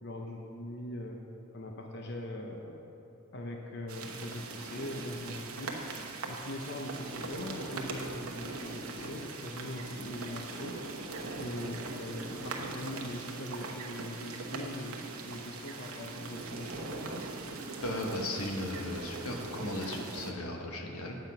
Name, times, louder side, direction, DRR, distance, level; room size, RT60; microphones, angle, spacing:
voice 1, 0.0-1.2 1.5-2.9 3.3-5.8 6.3-11.0 11.3-17.3, left 1 dB, 50° left, 1 dB, 0.8 m, -41 dB
sound 1, 3.9-20.3, right 3 dB, 80° right, 1.0 m, -41 dB
voice 2, 17.8-21.2, left 1 dB, 85° left, 2 dB, 1.2 m, -36 dB
8.9 x 8.0 x 5.4 m, 2.7 s
head